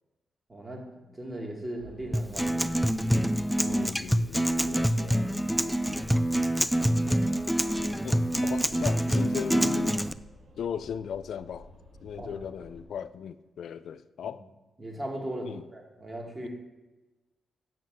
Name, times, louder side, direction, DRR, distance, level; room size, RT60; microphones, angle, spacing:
voice 1, 0.5-2.9 12.1-12.3 14.2-14.3 14.8-16.5, right 1 dB, 25° right, 0 dB, 2.4 m, -38 dB
sound 1, 1.8-12.8, left 1 dB, 65° right, 2.6 m, -50 dB
Acoustic guitar, 2.1-10.1, equal, ahead, 0.4 m, -26 dB
voice 2, 3.6-5.4 6.6-6.7 8.0-10.0 10.6-11.7 12.0-14.4 15.4-15.7 16.4-16.5, left 7 dB, 75° left, 14 dB, 0.4 m, -37 dB
7.4 x 5.8 x 7.6 m, 1.1 s
cardioid pair, 85°, 0 cm